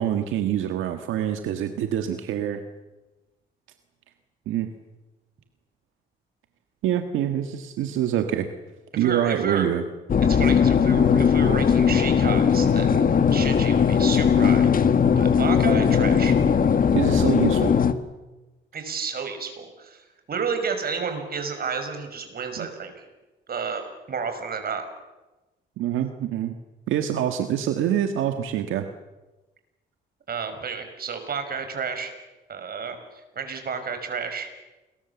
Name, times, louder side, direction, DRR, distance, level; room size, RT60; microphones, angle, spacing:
voice 1, 0.0-2.6 4.5-4.7 6.8-8.5 9.0-9.8 16.9-17.7 22.6-22.7 25.8-26.5 26.9-28.8, right 10 dB, 85° right, 6 dB, 1.7 m, -25 dB
voice 2, 9.0-9.7 10.3-13.0 13.3-14.9 15.2-16.4 18.7-20.0 20.3-23.0 23.5-24.9 30.3-32.1 32.5-33.0 33.4-34.5, right 5 dB, 50° right, 7 dB, 5.8 m, -31 dB
sound 1, 10.1-17.9, left 7 dB, 45° left, 1.7 m, -19 dB
29.5 x 22.0 x 7.2 m, 1.1 s
cardioid pair, 90°, 20 cm